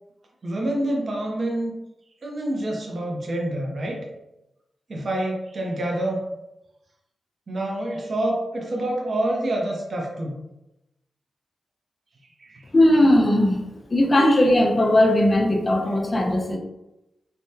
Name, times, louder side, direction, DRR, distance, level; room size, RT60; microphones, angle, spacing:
voice 1, 0.4-1.7 2.2-4.0 4.9-6.2 7.5-10.4 12.4-12.6, right 1 dB, 55° right, -1 dB, 0.6 m, -27 dB
voice 2, 12.7-13.6 13.9-16.6, left 1 dB, 35° left, 1 dB, 0.6 m, -18 dB
3.3 x 2.2 x 2.7 m, 0.92 s
cardioid pair, 80°, 0 cm